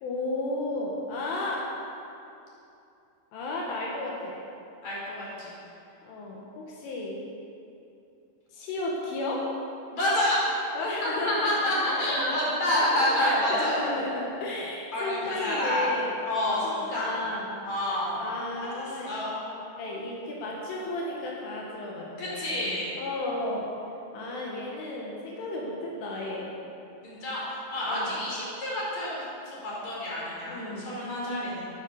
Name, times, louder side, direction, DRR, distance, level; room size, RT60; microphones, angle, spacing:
voice 1, 0.0-1.7 3.3-4.4 6.0-7.2 8.5-9.5 10.7-16.1 16.6-17.5 18.2-19.1 19.8-22.7 23.0-23.7 24.1-26.6 27.8-28.1 30.5-30.9, left 2 dB, 80° left, -3 dB, 4.3 m, -33 dB
voice 2, 4.8-5.5 9.9-10.4 11.0-13.8 14.9-15.9 16.2-17.2 17.6-18.2 18.6-19.6 22.2-22.9 27.0-31.7, left 1 dB, 35° left, -6 dB, 5.7 m, -29 dB
13.5 x 13.0 x 7.1 m, 2.7 s
omnidirectional pair, 5.5 m